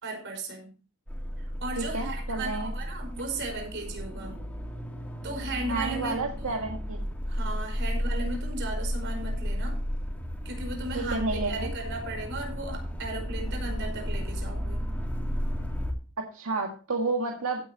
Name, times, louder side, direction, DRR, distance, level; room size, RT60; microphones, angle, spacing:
voice 1, 0.0-0.7 1.6-4.3 5.2-6.6 7.3-9.8 10.4-14.9, right 2 dB, 55° right, 3 dB, 5.1 m, -36 dB
sound 1, 1.1-15.9, equal, 5° left, 2.9 m, -33 dB
voice 2, 1.8-2.7 5.7-7.0 10.9-11.7 16.2-17.7, right 3 dB, 75° right, 2 dB, 1.8 m, -31 dB
16.5 x 9.0 x 2.9 m, 0.37 s
head